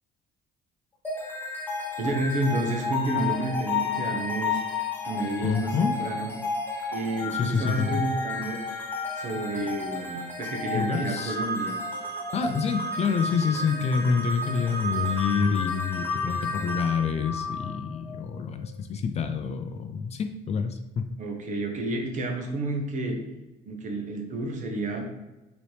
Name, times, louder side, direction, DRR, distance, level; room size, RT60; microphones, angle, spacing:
sound 1, 1.0-18.2, left 3 dB, 10° left, 1.0 m, -32 dB
voice 1, 2.0-4.6 5.0-6.3 6.9-8.6 9.1-11.8 21.2-23.2 23.7-25.0, right 2 dB, 50° right, 2 dB, 0.9 m, -30 dB
voice 2, 5.4-5.9 7.3-8.0 10.7-11.4 12.3-21.1, left 6 dB, 40° left, 7 dB, 0.4 m, -27 dB
4.1 x 3.0 x 3.3 m, 1.0 s
cardioid pair, 110°, 17 cm